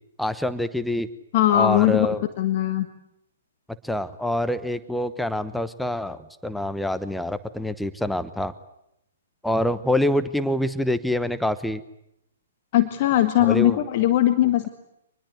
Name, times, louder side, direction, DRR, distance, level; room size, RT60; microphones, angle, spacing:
voice 1, 0.2-1.1 1.5-2.2 3.8-8.5 9.4-11.8 13.4-13.8, left 1 dB, ahead, 13 dB, 1.0 m, -26 dB
voice 2, 1.3-2.1 2.4-2.9 12.7-14.7, left 13 dB, 40° left, 8 dB, 1.6 m, -20 dB
25.0 x 21.0 x 9.6 m, 0.81 s
figure-of-eight pair, 120°, 0 cm